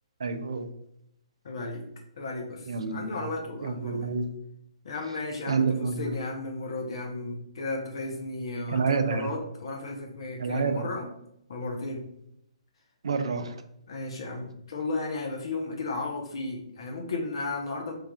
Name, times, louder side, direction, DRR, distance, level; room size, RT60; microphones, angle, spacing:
voice 1, 0.2-0.7 2.7-3.3 3.6-4.3 5.5-6.2 8.7-9.3 10.4-10.9 13.0-13.6, right 5 dB, 65° right, 9 dB, 0.4 m, -28 dB
voice 2, 1.4-1.9 2.2-4.1 4.8-11.1 11.5-12.0 13.9-17.9, left 2 dB, 55° left, 1 dB, 0.6 m, -34 dB
3.5 x 3.2 x 2.2 m, 0.77 s
figure-of-eight pair, 125°, 3 cm